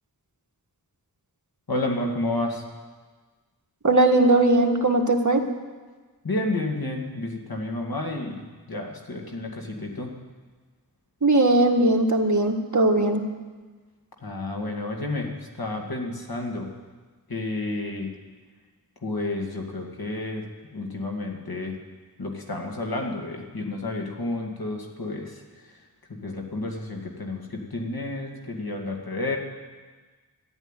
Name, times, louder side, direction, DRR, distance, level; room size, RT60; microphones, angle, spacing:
voice 1, 1.7-2.6 6.2-10.1 14.2-16.7 17.3-18.1 19.0-20.5 20.7-21.8 22.2-25.8 26.1-29.4, left 2 dB, 70° left, 1 dB, 2.4 m, -31 dB
voice 2, 3.8-5.4 11.2-13.2, right 2 dB, 50° right, 3 dB, 1.7 m, -19 dB
14.0 x 11.0 x 9.1 m, 1.4 s
wide cardioid pair, 65°, 38 cm